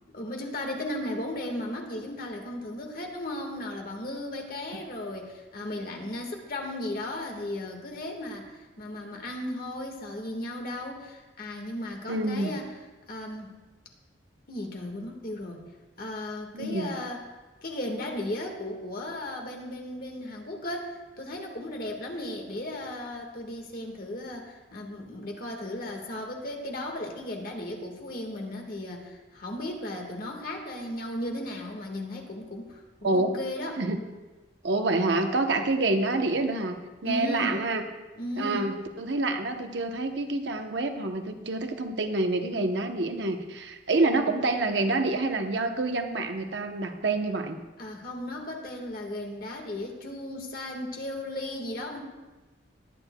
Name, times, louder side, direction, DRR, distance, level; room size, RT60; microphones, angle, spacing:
voice 1, 0.1-12.8 13.1-13.5 14.5-15.6 16.0-17.2 17.6-33.8 37.0-37.6 38.2-38.7 47.8-52.0, left 1 dB, 50° left, 2 dB, 1.6 m, -35 dB
voice 2, 12.1-12.5 16.5-16.9 33.0-33.3 33.8-34.0 34.6-37.8 38.4-47.6, right 2 dB, 70° right, 6 dB, 0.8 m, -27 dB
21.0 x 9.0 x 2.2 m, 1.2 s
head